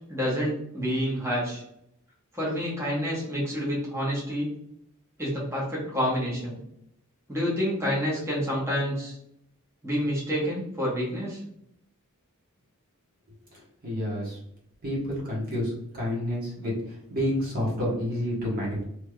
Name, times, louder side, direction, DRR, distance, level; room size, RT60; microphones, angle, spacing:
voice 1, 0.1-1.6 2.3-4.5 5.2-6.6 7.3-9.2 9.8-11.4, equal, 15° right, -6 dB, 1.1 m, -28 dB
voice 2, 13.8-14.4 14.8-18.8, equal, 40° right, -4 dB, 1.2 m, -29 dB
3.4 x 2.9 x 2.3 m, 0.73 s
head